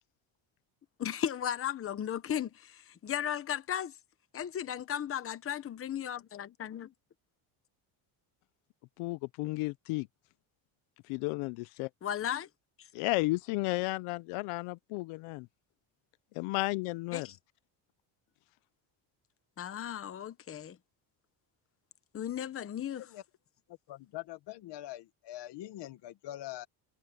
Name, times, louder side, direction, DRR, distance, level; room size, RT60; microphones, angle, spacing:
voice 1, 1.0-4.0 4.3-6.9 12.0-12.5 12.8-12.9 17.1-17.4 19.6-20.8 22.1-23.1, left 9 dB, 25° left, 1.0 m, -36 dB
voice 2, 9.0-10.1 11.1-11.9 12.9-15.5 16.4-17.3, left 23 dB, 85° left, 0.7 m, -33 dB
voice 3, 23.7-26.7, left 14 dB, 55° left, 1.4 m, -44 dB
cardioid pair, 155°, 50 cm